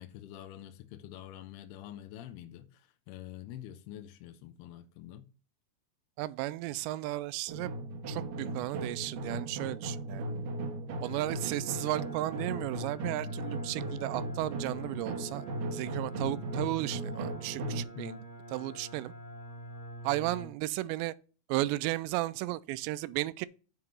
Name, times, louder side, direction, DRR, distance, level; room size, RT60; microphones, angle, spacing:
voice 1, 0.0-5.3 18.0-18.3, left 12 dB, 80° left, 2.5 m, -46 dB
voice 2, 6.2-7.7 8.1-10.2 11.0-15.5 15.7-18.2 18.5-19.1 20.0-21.1 21.5-23.5, right 17 dB, 85° right, 2.7 m, -34 dB
sound 1, 7.5-17.9, right 2 dB, 65° right, 2.4 m, -37 dB
sound 2, 11.0-20.5, right 1 dB, 35° left, 1.7 m, -46 dB
7.8 x 4.8 x 5.5 m
omnidirectional pair, 5.1 m